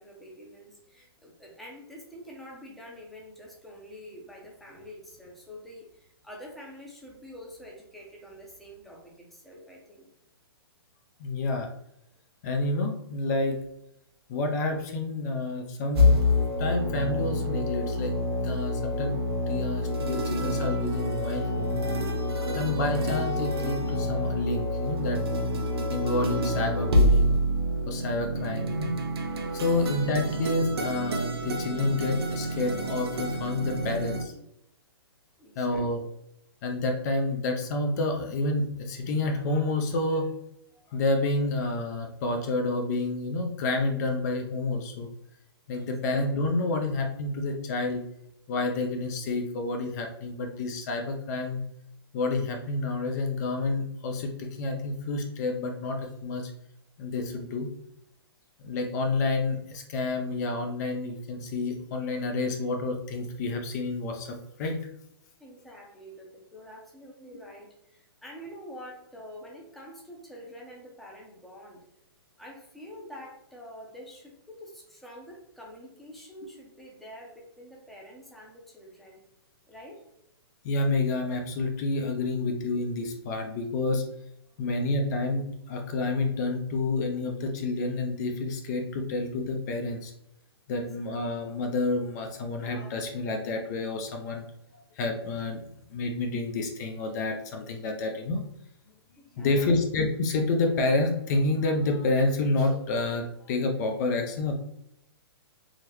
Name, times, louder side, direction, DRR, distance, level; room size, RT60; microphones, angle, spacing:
voice 1, 0.0-10.1 29.5-29.8 35.4-36.0 45.7-45.9 65.4-71.9 72.4-79.2 79.7-80.0 84.6-84.7 99.1-99.8, equal, ahead, -2 dB, 0.7 m, -47 dB
voice 2, 11.2-11.7 12.4-13.6 14.3-16.1 16.6-18.1 18.4-19.1 19.5-21.8 22.5-25.5 25.9-27.4 27.9-28.9 29.5-34.3 35.6-36.0 36.6-40.3 40.9-45.1 45.7-48.0 48.5-51.6 52.1-56.5 57.0-57.7 58.6-64.8 80.6-84.0 84.6-90.1 90.7-94.4 94.7-95.6 95.9-98.4 99.4-104.5, left 2 dB, 45° left, 3 dB, 0.6 m, -29 dB
sound 1, 15.9-34.2, left 1 dB, 75° right, 0.7 m, -27 dB
3.8 x 2.1 x 3.0 m, 0.77 s
hypercardioid pair, 135°, 13 cm